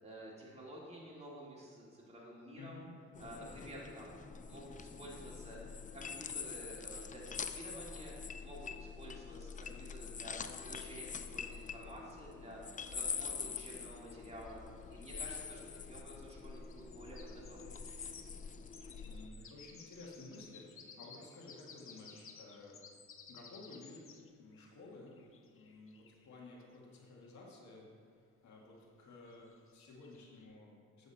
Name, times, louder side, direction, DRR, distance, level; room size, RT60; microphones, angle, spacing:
voice 1, 0.0-2.8 3.2-4.2 4.5-8.1 8.4-14.6 14.9-17.8, right 1 dB, 20° right, -5 dB, 2.5 m, -51 dB
voice 2, 2.6-2.9 19.0-22.8 23.3-24.1 24.4-25.2 25.5-31.1, left 2 dB, 65° left, -2 dB, 1.9 m, -54 dB
sound 1, 3.1-19.3, left 6 dB, 25° left, 0.4 m, -45 dB
sound 2, 14.1-15.4 16.5-27.3 29.3-30.5, left 6 dB, 45° left, 0.8 m, -58 dB
8.0 x 7.7 x 4.1 m, 2.1 s
cardioid pair, 90°, 30 cm